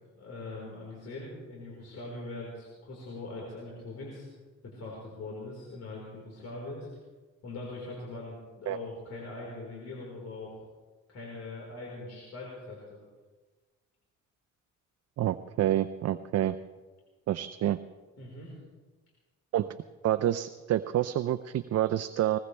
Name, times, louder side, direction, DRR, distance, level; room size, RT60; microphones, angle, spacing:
voice 1, 0.2-4.3 4.6-6.9 7.4-10.6 11.1-13.0 18.2-18.5, left 2 dB, 55° left, -3 dB, 4.4 m, -42 dB
voice 2, 15.2-16.6 17.3-17.8 19.5-19.7 20.0-22.4, right 12 dB, 55° right, 11 dB, 0.5 m, -28 dB
20.5 x 20.0 x 3.3 m, 1.3 s
cardioid pair, 90°, 30 cm